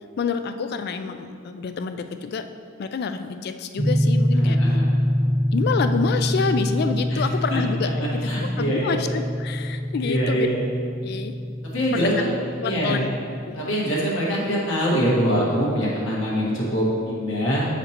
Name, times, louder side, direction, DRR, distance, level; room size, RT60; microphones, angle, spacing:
voice 1, 0.2-2.5 2.8-4.6 5.5-10.5 11.0-11.3 11.9-12.1 12.6-13.1 13.5-13.6, left 5 dB, 50° left, 9 dB, 0.3 m, -27 dB
sound 1, 3.8-13.5, equal, 30° right, 0.8 m, -25 dB
voice 2, 4.3-4.9 7.1-7.2 8.2-9.0 10.0-10.6 11.6-12.3 12.6-13.1 13.5-17.7, equal, 70° left, -5 dB, 1.6 m, -24 dB
7.6 x 5.0 x 2.9 m, 2.3 s
head